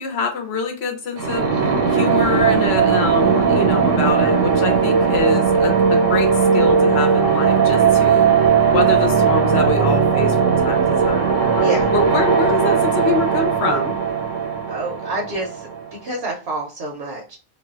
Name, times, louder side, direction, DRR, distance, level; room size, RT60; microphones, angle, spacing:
voice 1, 0.0-1.5 1.9-8.3 8.7-13.9, left 4 dB, 65° left, 4 dB, 0.8 m, -25 dB
sound 1, 1.2-15.9, right 6 dB, 85° right, 1.1 m, -17 dB
voice 2, 11.6-11.9 14.7-15.7 16.0-17.4, right 2 dB, 60° right, -1 dB, 0.8 m, -28 dB
2.5 x 2.2 x 2.3 m, 0.36 s
omnidirectional pair, 1.2 m